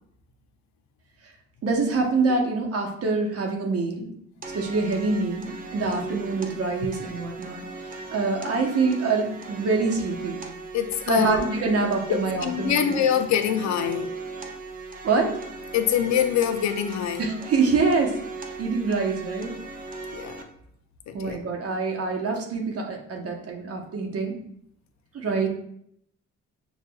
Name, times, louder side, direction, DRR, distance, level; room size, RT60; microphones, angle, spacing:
voice 1, 1.6-4.1 4.5-10.4 11.1-13.0 15.0-15.3 17.2-18.1 18.6-19.5 21.1-24.4 25.1-25.5, right 4 dB, 50° right, 1 dB, 0.9 m, -25 dB
sound 1, 4.4-20.4, right 3 dB, 30° right, 0.5 m, -38 dB
voice 2, 10.7-11.5 12.1-14.1 15.7-17.2 20.1-20.4 21.1-21.4, left 9 dB, 65° left, 8 dB, 0.5 m, -24 dB
6.1 x 2.4 x 2.2 m, 0.71 s
cardioid pair, 90°, 30 cm